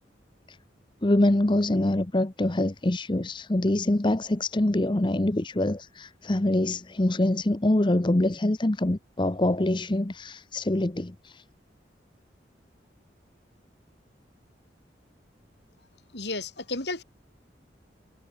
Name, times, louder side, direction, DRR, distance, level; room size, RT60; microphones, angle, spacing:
voice 1, 1.0-11.4, left 1 dB, 25° left, 0.8 m, -25 dB
voice 2, 16.1-17.0, left 2 dB, 70° left, 7.5 m, -32 dB
head